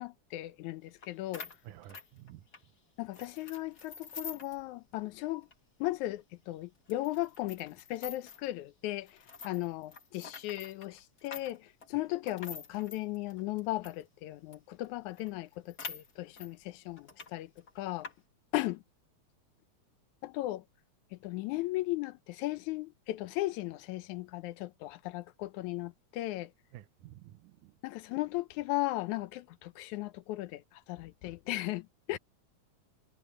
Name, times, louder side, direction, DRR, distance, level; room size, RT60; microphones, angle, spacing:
voice 1, 0.0-1.5 3.0-5.5 5.8-9.1 9.4-17.5 17.8-18.1 18.5-18.8 20.2-20.6 21.1-26.5 27.8-32.2, left 17 dB, 85° left, 2.1 m, -36 dB
sound 1, 1.0-1.1 1.3-2.7 3.1-4.6 4.9-5.0 5.4-5.5 6.1-6.2 6.9-8.5 9.1-14.0 14.5-14.6 14.8-14.9 15.2-16.5 17.0-17.3 17.6-18.1, left 5 dB, 35° left, 2.5 m, -46 dB
voice 2, 1.6-2.5 26.7-27.8, right 13 dB, 85° right, 2.4 m, -51 dB
omnidirectional pair, 3.4 m